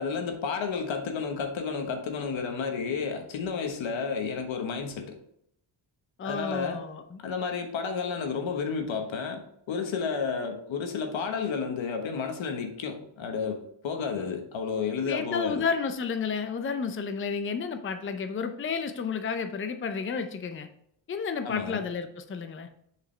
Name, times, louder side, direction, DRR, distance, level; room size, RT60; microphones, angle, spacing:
voice 1, 0.0-5.2 6.2-6.8 7.2-9.4 9.7-15.6 21.4-21.8, left 5 dB, 80° left, 4 dB, 1.3 m, -31 dB
voice 2, 6.2-7.2 15.0-20.7 21.1-22.7, left 5 dB, 25° left, 8 dB, 0.6 m, -31 dB
6.9 x 5.0 x 3.3 m, 0.71 s
cardioid pair, 85°, 46 cm